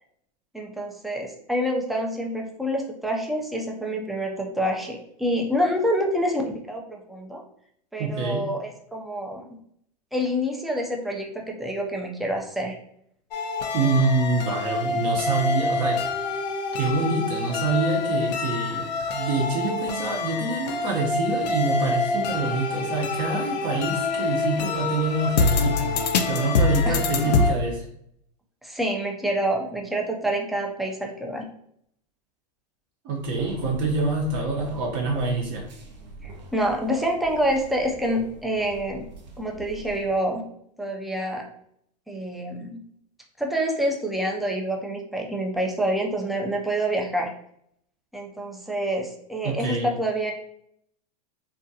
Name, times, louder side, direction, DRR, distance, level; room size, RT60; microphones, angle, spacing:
voice 1, 0.5-7.4 7.9-9.6 10.1-12.8 26.8-27.4 28.6-31.5 36.2-39.1 39.4-40.5 40.8-41.5 42.1-42.8 43.4-47.3 48.1-50.3, equal, ahead, 0 dB, 0.3 m, -27 dB
voice 2, 8.0-8.5 13.7-16.0 16.8-25.9 26.3-27.9 33.0-35.6 49.4-49.9, right 3 dB, 45° right, -1 dB, 0.6 m, -26 dB
sound 1, 13.3-27.5, left 3 dB, 80° left, 0.4 m, -26 dB
sound 2, 33.2-40.2, right 2 dB, 90° right, 0.6 m, -42 dB
2.5 x 2.2 x 2.6 m, 0.69 s
hypercardioid pair, 115°, 21 cm